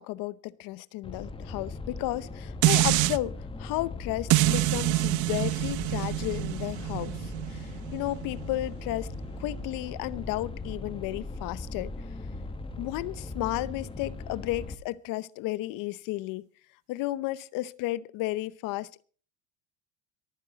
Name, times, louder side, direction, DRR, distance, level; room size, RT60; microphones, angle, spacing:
voice 1, 0.0-11.9 12.8-16.5 16.9-19.0, left 17 dB, 60° left, 0.8 m, -33 dB
sound 1, 1.0-14.7, left 2 dB, 15° left, 1.2 m, -39 dB
sound 2, 2.6-3.2 4.3-9.4 9.9-10.0, right 21 dB, 55° right, 0.6 m, -27 dB
23.5 x 9.8 x 3.9 m
cardioid pair, 145°, 37 cm